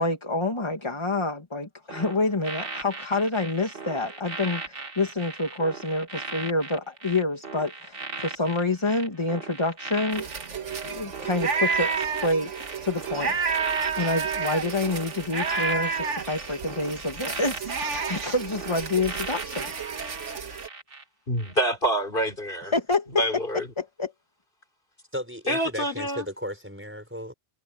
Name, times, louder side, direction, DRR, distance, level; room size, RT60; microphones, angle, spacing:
voice 1, 0.0-10.3 10.8-12.5 12.8-13.4 14.0-19.7 22.7-23.2 23.8-24.1, left 2 dB, 25° left, 1.9 m, -27 dB
sound 1, 1.9-21.0 21.4-21.7, right 3 dB, 50° right, 1.9 m, -38 dB
sound 2, 10.1-20.7, right 5 dB, 90° right, 1.9 m, -30 dB
voice 2, 21.3-22.7 23.1-23.7 25.5-26.2, equal, 50° left, 3.5 m, -26 dB
voice 3, 25.1-27.3, equal, 10° right, 5.8 m, -35 dB
omnidirectional pair, 1.2 m